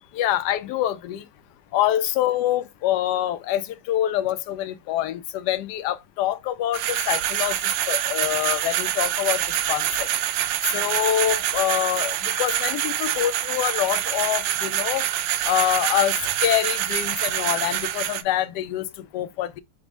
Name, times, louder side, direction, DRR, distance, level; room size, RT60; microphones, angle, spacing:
voice 1, 0.1-1.2 1.7-7.6 7.9-9.4 9.7-10.1 10.7-15.1 15.4-16.2 16.4-19.6, left 12 dB, 75° left, 1.1 m, -25 dB
sound 1, 6.7-18.2, right 12 dB, 85° right, 1.2 m, -26 dB
6.2 x 2.1 x 3.4 m
omnidirectional pair, 2.0 m